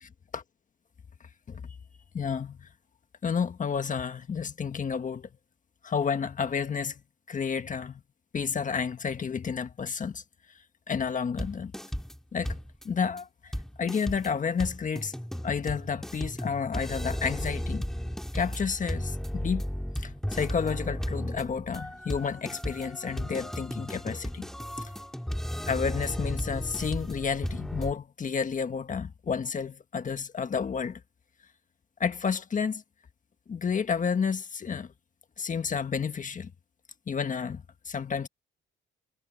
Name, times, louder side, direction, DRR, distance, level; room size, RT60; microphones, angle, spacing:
voice 1, 2.1-2.7 3.2-5.3 5.8-6.9 7.3-8.0 8.3-10.2 10.9-11.7 12.3-12.5 12.8-13.5 13.8-15.1 15.4-17.8 18.3-19.6 20.0-24.4 25.7-31.0 32.0-32.8 33.5-34.9 35.4-36.5 37.1-38.3, left 6 dB, 40° left, 1.6 m, -31 dB
sound 1, 11.4-12.2 12.5-12.9 13.2-13.3 13.5-27.9, equal, ahead, 2.5 m, -35 dB
cardioid pair, 90°, 20 cm